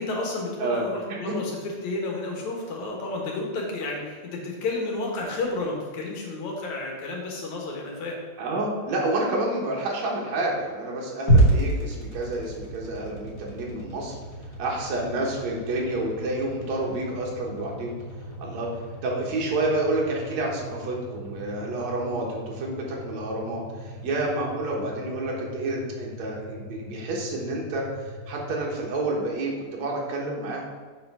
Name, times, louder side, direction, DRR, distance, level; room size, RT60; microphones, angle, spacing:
voice 1, 0.0-8.2, left 2 dB, 75° left, -1 dB, 2.6 m, -31 dB
voice 2, 0.6-1.3 8.4-14.1 14.6-17.9 18.4-18.7 19.0-30.7, right 2 dB, 70° right, -2 dB, 2.5 m, -29 dB
sound 1, 11.3-29.5, right 1 dB, 45° left, 2.5 m, -31 dB
7.0 x 3.9 x 5.4 m, 1.5 s
omnidirectional pair, 3.4 m